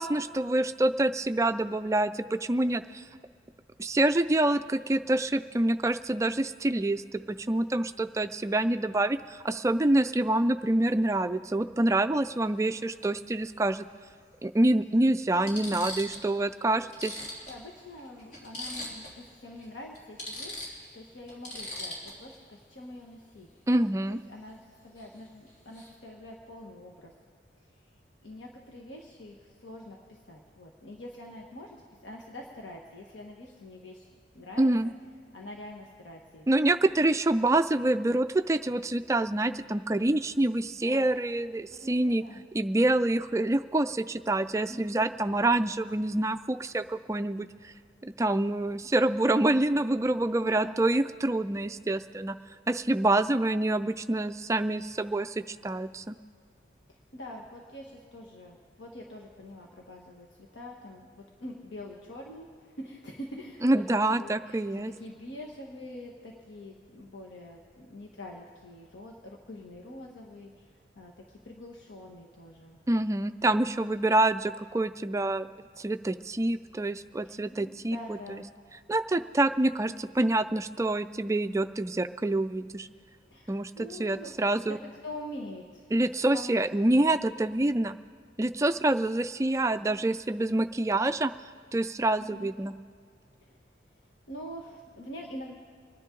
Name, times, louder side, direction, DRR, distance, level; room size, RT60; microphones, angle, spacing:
voice 1, 0.0-3.0 3.8-13.9 14.4-17.2 23.7-24.2 34.6-34.9 36.5-42.2 42.5-47.7 48.0-52.4 52.7-56.2 63.6-64.9 72.9-78.4 78.9-82.9 83.5-84.8 85.9-88.0 88.4-91.3 91.7-92.7, right 2 dB, 15° right, 10 dB, 0.3 m, -26 dB
sound 1, 12.6-12.7 14.1-14.2 14.8-14.9 15.3-16.3 16.6-16.7 16.9-19.2 19.5-19.6 19.9-22.4 25.0-25.2 25.5-25.9, left 1 dB, 50° left, 3.6 m, -40 dB
voice 2, 17.5-20.7 20.9-27.1 28.2-34.1 34.3-34.7 35.3-36.5 36.8-36.9 40.8-41.1 41.7-42.4 44.7-45.1 50.4-51.0 56.9-60.3 60.5-72.8 77.2-78.5 83.2-86.6 92.2-92.5 93.4-93.6 94.3-95.6, left 1 dB, 80° left, -1 dB, 1.3 m, -45 dB
25.5 x 10.5 x 3.8 m, 2.1 s
head